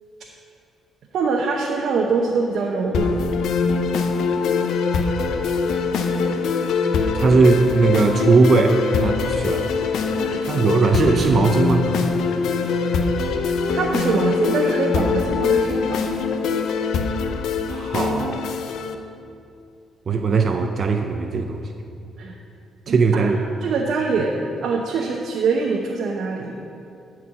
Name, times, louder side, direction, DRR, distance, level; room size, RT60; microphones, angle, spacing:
voice 1, 1.1-3.1 10.2-10.7 13.7-16.0 22.2-22.3 22.9-23.3 23.6-26.5, right 4 dB, 70° right, -1 dB, 0.9 m, -24 dB
sound 1, 2.9-18.9, left 5 dB, 75° left, 0.7 m, -23 dB
voice 2, 7.1-9.7 10.5-11.9 17.7-18.4 20.1-21.6 22.9-23.4, right 4 dB, 50° right, 5 dB, 0.6 m, -18 dB
12.5 x 4.6 x 7.3 m, 2.6 s
cardioid pair, 90°, 0 cm